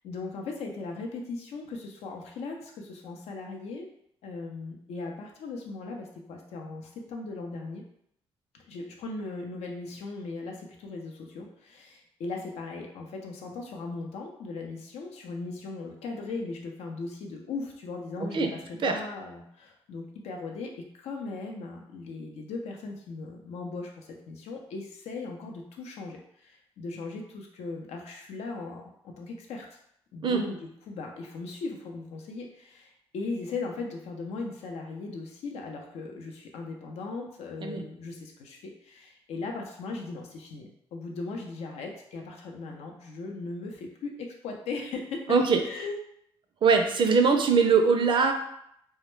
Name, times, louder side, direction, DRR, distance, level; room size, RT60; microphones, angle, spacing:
voice 1, 0.0-3.9 4.2-7.8 8.7-29.6 30.1-30.6 30.9-46.0, left 3 dB, 80° left, 1 dB, 0.5 m, -38 dB
voice 2, 45.3-45.6 46.6-48.3, right 5 dB, 50° right, 4 dB, 0.4 m, -22 dB
2.2 x 2.1 x 3.1 m, 0.73 s
cardioid pair, 70°, 11 cm